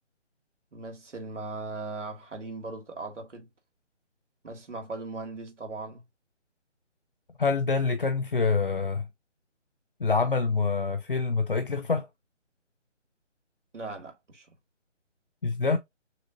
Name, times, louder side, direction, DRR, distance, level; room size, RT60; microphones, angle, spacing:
voice 1, 0.7-3.5 4.4-6.0 13.7-14.5, right 3 dB, 75° right, 1.8 m, -38 dB
voice 2, 7.4-9.1 10.0-12.1 15.4-15.8, left 4 dB, 45° left, 0.5 m, -26 dB
6.6 x 2.4 x 2.8 m
figure-of-eight pair, 170°, 37 cm